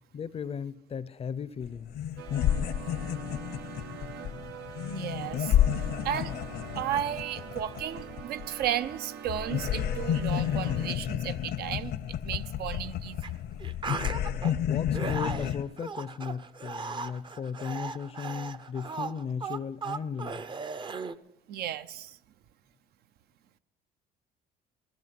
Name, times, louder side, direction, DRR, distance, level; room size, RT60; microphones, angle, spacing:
voice 1, 0.1-1.9 14.6-20.4, left 7 dB, 35° left, 0.6 m, -36 dB
sound 1, 1.6-1.7 1.9-9.0 9.3-15.6, left 10 dB, 70° left, 0.8 m, -30 dB
sound 2, 2.2-10.9, right 8 dB, 85° right, 1.0 m, -44 dB
voice 2, 4.9-5.6 6.0-6.3 6.7-13.3 21.5-22.2, right 11 dB, 70° right, 0.6 m, -34 dB
sound 3, 13.2-13.3 13.6-14.5 14.9-21.1, right 5 dB, 30° right, 0.6 m, -37 dB
17.0 x 13.5 x 5.9 m
cardioid pair, 110°, 17 cm